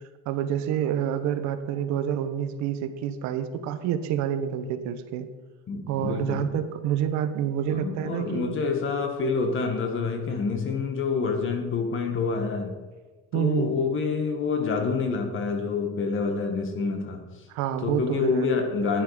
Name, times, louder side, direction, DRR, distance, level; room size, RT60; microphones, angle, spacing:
voice 1, 0.3-5.3 5.9-8.5 13.3-13.7 17.5-18.5, right 9 dB, 70° right, 9 dB, 1.1 m, -28 dB
voice 2, 5.7-6.5 7.7-12.8 13.3-17.2 17.8-19.0, left 4 dB, 45° left, 5 dB, 1.9 m, -27 dB
10.5 x 10.0 x 5.1 m, 1.3 s
cardioid pair, 135°, 29 cm